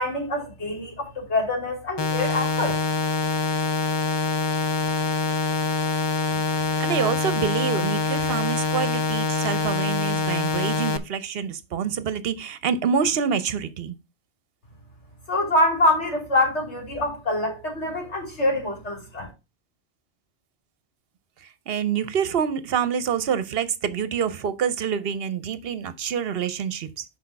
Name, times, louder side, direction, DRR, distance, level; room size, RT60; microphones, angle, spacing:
voice 1, 0.0-2.8 15.3-19.3, left 1 dB, 80° left, 3.2 m, -25 dB
sound 1, 2.0-11.0, left 4 dB, 40° left, 0.4 m, -25 dB
voice 2, 6.8-13.9 21.4-27.0, right 7 dB, 60° right, 0.9 m, -27 dB
6.3 x 4.6 x 5.7 m
omnidirectional pair, 1.2 m